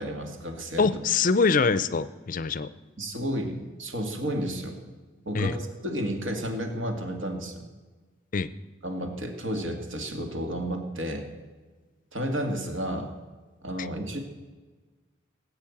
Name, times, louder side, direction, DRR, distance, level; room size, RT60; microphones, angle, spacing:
voice 1, 0.0-0.9 3.0-4.8 5.3-7.6 8.8-11.2 12.1-13.1 13.6-14.2, equal, 75° right, 4 dB, 2.1 m, -32 dB
voice 2, 0.8-2.7 5.3-5.6 8.3-8.5 13.8-13.9, left 4 dB, 40° left, 15 dB, 0.5 m, -24 dB
18.0 x 8.3 x 7.2 m, 1.3 s
head